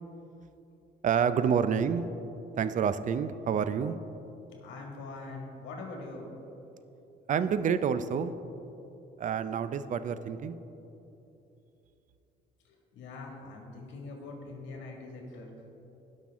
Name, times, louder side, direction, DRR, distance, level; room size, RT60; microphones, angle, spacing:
voice 1, 1.0-2.1 2.6-4.0 7.3-8.3 9.2-10.6, right 7 dB, 45° right, 13 dB, 0.5 m, -28 dB
voice 2, 4.6-6.3 13.0-15.5, left 3 dB, 85° left, 0 dB, 2.0 m, -43 dB
17.5 x 5.9 x 3.6 m, 2.9 s
cardioid pair, 115°, 19 cm